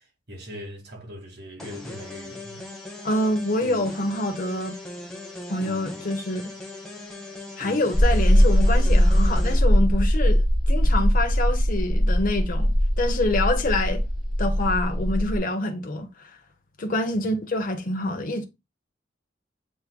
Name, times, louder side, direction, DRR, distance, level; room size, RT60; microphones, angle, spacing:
voice 1, 0.0-2.7 17.2-17.3, equal, 60° right, 2.0 m, -41 dB
sound 1, 1.6-9.6, left 2 dB, 5° left, 1.1 m, -39 dB
voice 2, 3.0-4.7 5.5-6.5 7.6-14.0 14.4-16.3 16.8-18.4, left 1 dB, 45° left, 0.9 m, -26 dB
sound 2, 7.9-15.4, equal, 25° right, 1.9 m, -20 dB
7.1 x 3.2 x 2.2 m
head